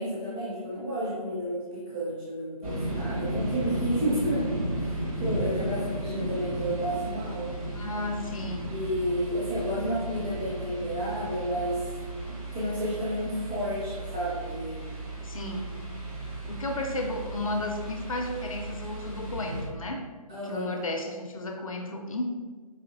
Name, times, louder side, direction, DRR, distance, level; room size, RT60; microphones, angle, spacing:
voice 1, 0.0-7.5 8.7-11.9 12.3-15.0 20.3-20.8, equal, 15° right, -9 dB, 0.5 m, -31 dB
sound 1, 2.6-19.7, right 1 dB, 60° right, 1.4 m, -34 dB
voice 2, 7.7-8.7 15.2-15.7 16.5-20.1 20.4-22.2, left 2 dB, 60° left, 4 dB, 0.4 m, -33 dB
4.8 x 2.8 x 2.4 m, 1.5 s
figure-of-eight pair, 145°, 20 cm